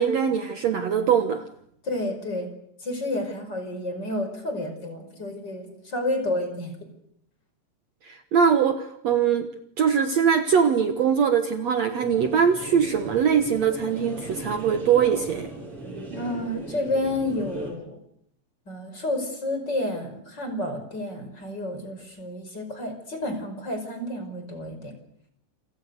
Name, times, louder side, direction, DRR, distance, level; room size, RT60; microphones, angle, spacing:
voice 1, 0.0-1.4 8.1-9.5 9.8-15.5, right 7 dB, 60° right, 8 dB, 2.2 m, -22 dB
voice 2, 1.8-2.5 2.8-6.7 16.2-18.0 18.7-24.9, left 1 dB, 30° left, 7 dB, 5.8 m, -30 dB
sound 1, 12.0-17.7, right 2 dB, 35° right, 8.9 m, -38 dB
29.0 x 26.0 x 6.6 m, 0.72 s
omnidirectional pair, 4.1 m